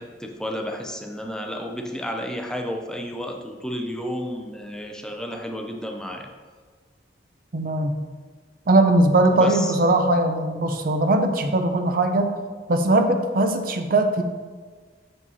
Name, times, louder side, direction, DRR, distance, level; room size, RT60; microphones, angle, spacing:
voice 1, 0.0-6.3 9.3-9.8, equal, 5° left, 2 dB, 0.5 m, -32 dB
voice 2, 7.5-8.0 8.7-12.4 12.7-14.2, right 2 dB, 50° right, 6 dB, 0.6 m, -20 dB
7.2 x 4.9 x 4.1 m, 1.5 s
head